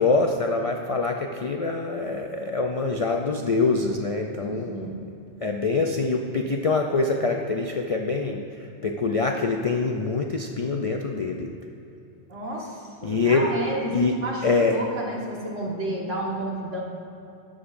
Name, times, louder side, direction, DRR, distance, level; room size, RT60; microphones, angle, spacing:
voice 1, 0.0-4.9 5.4-8.4 8.8-11.5 13.0-13.5 13.9-14.1 14.4-14.8, left 3 dB, 60° left, 2 dB, 0.3 m, -24 dB
voice 2, 4.4-5.0 12.3-16.8, right 1 dB, 85° right, -3 dB, 2.0 m, -31 dB
18.0 x 6.4 x 2.6 m, 2.8 s
omnidirectional pair, 1.2 m